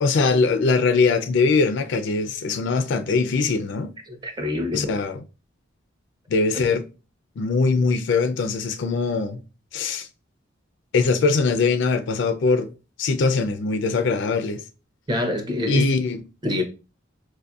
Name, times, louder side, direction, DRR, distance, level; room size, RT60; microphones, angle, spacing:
voice 1, 0.0-3.9 4.7-5.2 6.3-6.8 7.4-9.4 9.7-10.1 10.9-12.7 13.0-14.6 15.7-16.2, left 4 dB, 60° left, 0.4 m, -21 dB
voice 2, 4.1-4.9 15.1-15.9 16.4-16.6, left 1 dB, 20° right, 0.6 m, -25 dB
4.3 x 2.6 x 2.3 m
head